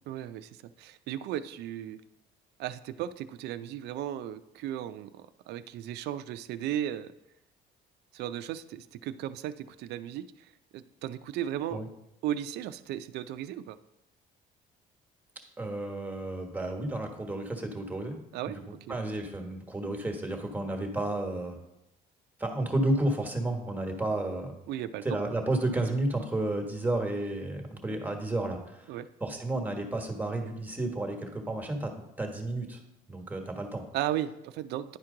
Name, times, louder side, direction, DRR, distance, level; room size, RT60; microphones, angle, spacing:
voice 1, 0.1-2.0 2.6-7.1 8.1-11.8 12.2-13.8 18.3-19.0 24.7-25.1 28.9-29.1 33.9-35.0, right 11 dB, 80° right, 12 dB, 0.4 m, -36 dB
voice 2, 15.6-18.2 18.5-21.6 22.4-24.6 25.0-28.9 29.2-31.9 32.2-32.8 33.1-33.8, right 2 dB, 10° right, 3 dB, 1.2 m, -32 dB
10.5 x 4.5 x 3.8 m, 0.87 s
cardioid pair, 110°, 17 cm